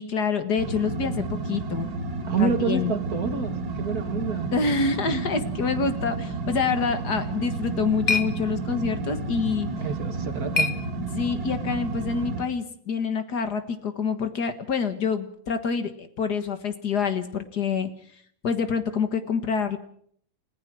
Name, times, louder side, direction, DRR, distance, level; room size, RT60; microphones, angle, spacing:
voice 1, 0.0-1.9 2.4-2.9 4.5-9.7 11.1-17.9 18.4-19.8, left 5 dB, 60° left, 9 dB, 2.0 m, -27 dB
sound 1, 0.6-12.4, right 3 dB, 70° right, 2.8 m, -31 dB
voice 2, 2.3-4.5 5.1-5.2 9.8-10.7, right 5 dB, 50° right, 7 dB, 2.2 m, -28 dB
sound 2, 7.3-11.5, left 4 dB, 30° left, 1.0 m, -32 dB
30.0 x 15.0 x 6.2 m, 0.65 s
omnidirectional pair, 2.1 m